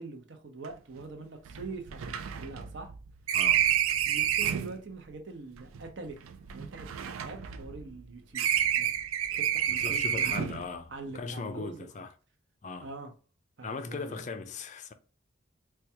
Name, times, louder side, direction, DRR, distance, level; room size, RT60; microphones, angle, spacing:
voice 1, 0.0-2.9 4.0-6.2 6.5-8.5 8.8-8.9 9.4-10.6 10.9-11.9 12.8-13.1 13.6-14.3, right 3 dB, 60° right, 0.8 m, -43 dB
sound 1, 0.6-0.7 1.0-1.1 1.5-4.8 5.6-8.0 8.3-10.7, right 10 dB, 85° right, 0.4 m, -29 dB
voice 2, 3.3-3.7 9.8-12.1 12.6-12.9 13.6-14.9, left 4 dB, 35° left, 0.4 m, -38 dB
4.4 x 2.3 x 2.8 m
head